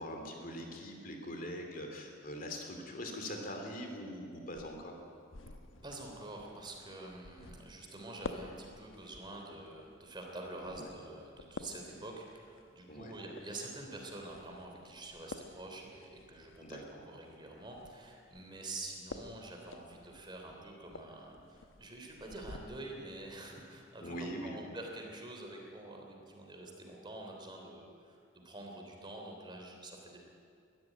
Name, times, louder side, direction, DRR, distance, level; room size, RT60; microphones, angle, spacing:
voice 1, 0.0-4.9 10.7-10.9 12.9-13.2 16.6-16.8 24.0-24.6, equal, 45° left, 3 dB, 2.8 m, -42 dB
sound 1, 4.4-22.6, left 3 dB, 90° left, 1.1 m, -51 dB
voice 2, 5.8-30.2, right 2 dB, 25° right, 1 dB, 3.3 m, -47 dB
21.5 x 13.5 x 9.3 m, 2.5 s
head